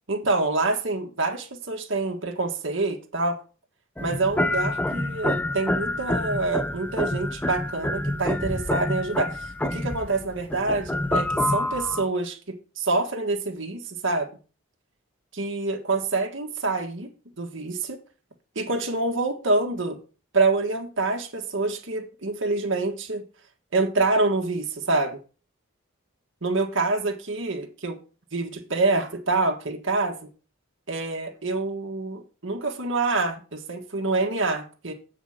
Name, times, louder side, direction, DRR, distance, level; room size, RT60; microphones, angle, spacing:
voice 1, 0.1-3.4 4.0-14.3 15.3-17.1 17.4-18.0 18.5-20.0 20.3-23.2 23.7-25.2 26.4-28.0 28.3-30.2 30.9-34.9, right 3 dB, 65° right, 1.6 m, -26 dB
sound 1, 4.0-12.0, left 1 dB, 10° left, 0.4 m, -27 dB
8.3 x 4.9 x 6.3 m
head